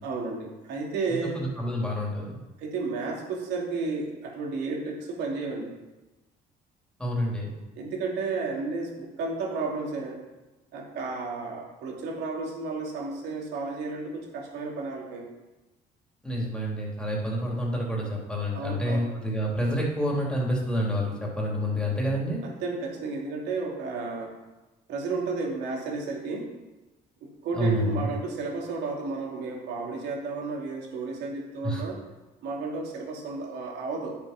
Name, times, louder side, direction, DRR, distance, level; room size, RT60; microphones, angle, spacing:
voice 1, 0.0-1.4 2.6-5.7 7.8-10.2 10.7-15.3 18.5-19.0 22.4-24.3 24.9-26.5 27.2-32.0 32.4-34.2, right 3 dB, 80° right, -1 dB, 2.9 m, -32 dB
voice 2, 1.3-2.4 7.0-7.5 16.2-22.4 27.5-28.1 31.6-31.8, equal, 5° left, -3 dB, 3.1 m, -28 dB
10.0 x 6.8 x 6.0 m, 1.1 s
cardioid pair, 110°, 17 cm